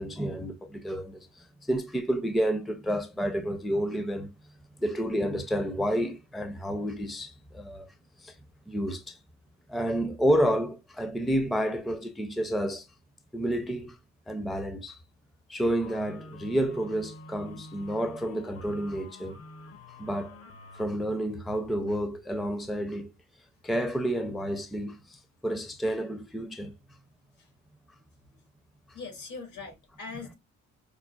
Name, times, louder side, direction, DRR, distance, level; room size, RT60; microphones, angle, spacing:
voice 1, 0.0-4.3 4.8-7.9 8.2-8.3 8.7-9.2 9.7-12.9 13.3-14.0 14.3-15.0 15.5-19.4 20.0-20.3 20.7-23.1 23.6-26.7, equal, ahead, 0.4 m, -30 dB
sound 1, 15.8-20.8, left 2 dB, 55° left, 0.7 m, -47 dB
voice 2, 28.9-30.3, left 4 dB, 75° left, 1.7 m, -41 dB
5.0 x 2.0 x 2.3 m
cardioid pair, 90°, 30 cm